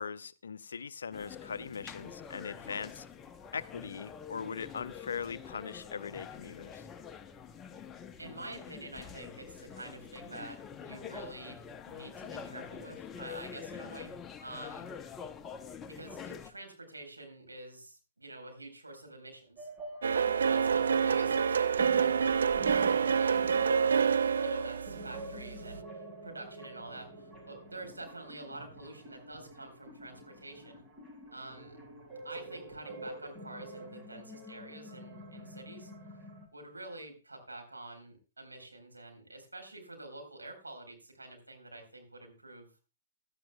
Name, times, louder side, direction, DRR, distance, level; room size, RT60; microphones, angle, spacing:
voice 1, 0.0-3.1 3.5-6.8, left 6 dB, 70° left, 15 dB, 0.6 m, -40 dB
sound 1, 1.1-16.5, left 7 dB, 20° left, 0.8 m, -46 dB
voice 2, 8.2-11.6 11.8-14.9 15.9-19.7 20.0-21.7 21.9-30.8 31.3-31.8 32.2-35.9 36.5-42.7, right 2 dB, 85° right, 3 dB, 4.1 m, -48 dB
sound 2, 19.6-36.5, right 1 dB, 25° right, 6.8 m, -47 dB
sound 3, 20.0-25.8, right 6 dB, 70° right, 0.6 m, -27 dB
16.5 x 11.5 x 2.3 m, 0.34 s
figure-of-eight pair, 115°, 0 cm